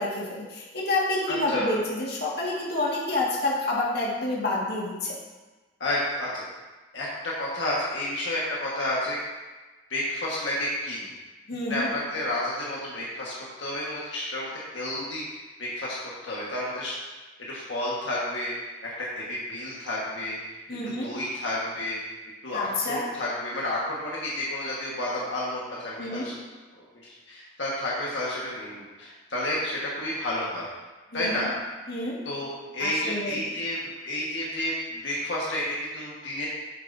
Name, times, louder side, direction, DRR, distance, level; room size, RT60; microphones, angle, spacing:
voice 1, 0.0-5.2 11.5-11.9 20.7-21.1 22.5-23.0 26.0-26.3 31.1-31.5 31.9-32.2 32.8-33.4, left 2 dB, 55° left, -5 dB, 1.8 m, -28 dB
voice 2, 1.3-1.7 5.8-6.4 6.9-9.2 9.9-11.1 11.7-15.2 15.6-16.0 16.2-16.9 17.5-18.5 18.8-20.4 21.0-22.0 22.4-26.3 27.0-30.7 31.1-31.5 32.2-32.5 32.7-36.5, left 1 dB, 75° left, -6 dB, 1.5 m, -31 dB
8.9 x 6.9 x 2.7 m, 1.2 s
head